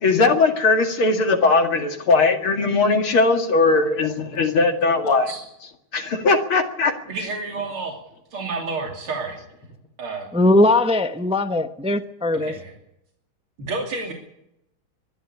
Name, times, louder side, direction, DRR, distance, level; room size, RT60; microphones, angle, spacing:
voice 1, 0.0-5.3 5.9-6.9, left 3 dB, 85° left, 5 dB, 3.0 m, -19 dB
voice 2, 7.1-8.0 8.3-9.4 10.0-10.3 12.3-12.7 13.6-14.1, right 3 dB, 90° right, 1 dB, 3.7 m, -30 dB
voice 3, 10.3-12.5, left 1 dB, 5° right, 8 dB, 0.6 m, -19 dB
23.5 x 11.5 x 10.0 m, 0.81 s
omnidirectional pair, 2.3 m